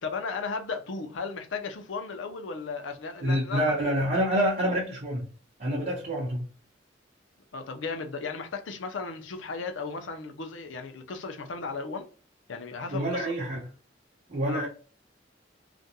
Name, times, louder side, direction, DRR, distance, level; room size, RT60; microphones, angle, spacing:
voice 1, 0.0-3.6 7.5-12.1 12.5-13.3 14.5-14.6, left 4 dB, 90° left, 0.5 m, -35 dB
voice 2, 3.2-5.3 5.6-6.5 12.9-13.7 14.3-14.7, equal, 50° right, 0.8 m, -27 dB
2.5 x 2.2 x 2.7 m
head